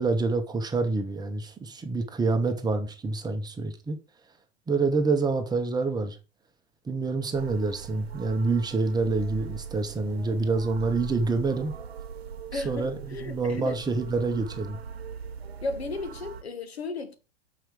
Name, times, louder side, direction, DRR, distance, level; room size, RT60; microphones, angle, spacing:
voice 1, 0.0-4.0 4.7-6.2 6.9-11.7 12.5-14.8, right 3 dB, 15° right, 1.1 m, -27 dB
sound 1, 7.3-16.4, right 7 dB, 80° right, 0.9 m, -40 dB
voice 2, 12.5-13.8 15.6-17.2, left 3 dB, 90° left, 1.4 m, -34 dB
6.2 x 4.8 x 5.0 m
hypercardioid pair, 110°, 31 cm